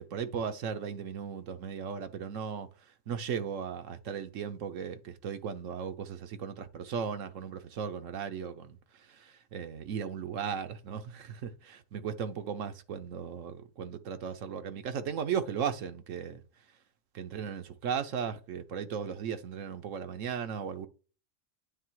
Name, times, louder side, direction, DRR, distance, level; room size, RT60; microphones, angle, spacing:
voice 1, 0.0-2.7 3.1-8.8 9.1-16.4 17.1-20.9, right 7 dB, 80° right, 1.2 m, -36 dB
9.1 x 3.4 x 4.6 m
omnidirectional pair, 1.3 m